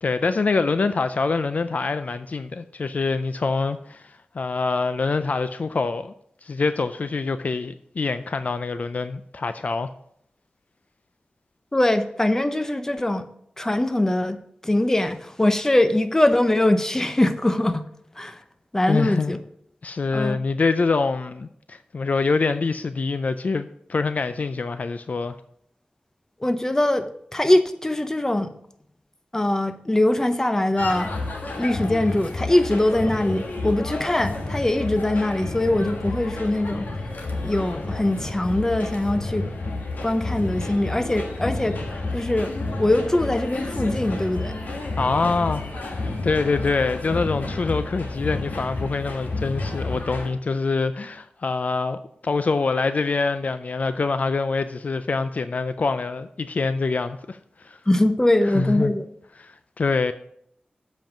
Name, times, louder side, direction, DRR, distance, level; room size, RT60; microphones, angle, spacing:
voice 1, 0.0-6.1 6.4-9.9 18.9-19.4 19.8-25.4 45.0-45.6 46.0-57.8 58.5-58.9 59.4-60.1, left 4 dB, 55° left, 0.4 m, -25 dB
voice 2, 11.7-13.3 13.6-17.9 18.2-18.4 18.7-19.4 20.1-20.4 26.4-28.5 29.3-31.1 31.6-36.9 37.4-39.5 40.0-41.8 42.1-42.5 42.8-44.6 57.9-59.1, left 1 dB, 15° left, 0.7 m, -22 dB
sound 1, 30.8-50.3, left 2 dB, 80° left, 1.6 m, -30 dB
7.7 x 5.3 x 5.9 m
wide cardioid pair, 95°, 3 cm